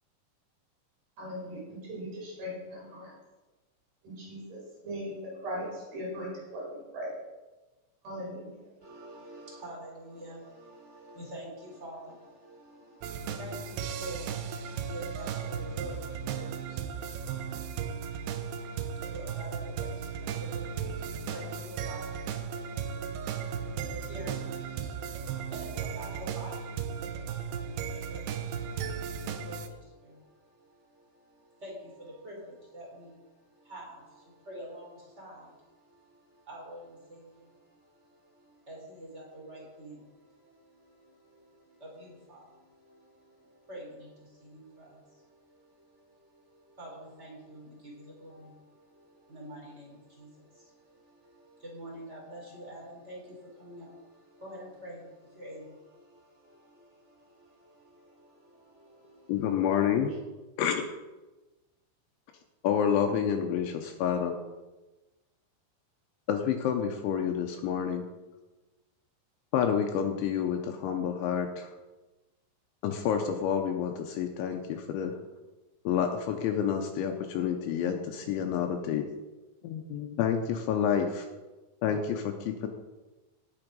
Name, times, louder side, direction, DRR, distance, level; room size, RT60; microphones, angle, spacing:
voice 1, 1.2-3.1 4.0-7.1 8.0-8.5, equal, 50° right, -5 dB, 6.5 m, -39 dB
voice 2, 8.8-59.7 60.1-60.2, right 1 dB, 15° right, -3 dB, 3.6 m, -48 dB
sound 1, 13.0-29.7, right 7 dB, 90° right, 2.3 m, -36 dB
voice 3, 59.3-60.1 60.6-60.8 62.6-64.4 66.3-68.0 69.5-71.7 72.8-75.1 75.9-79.1 79.6-81.3 81.8-82.7, left 8 dB, 80° left, 4 dB, 2.9 m, -29 dB
17.5 x 7.1 x 5.3 m, 1.1 s
omnidirectional pair, 5.8 m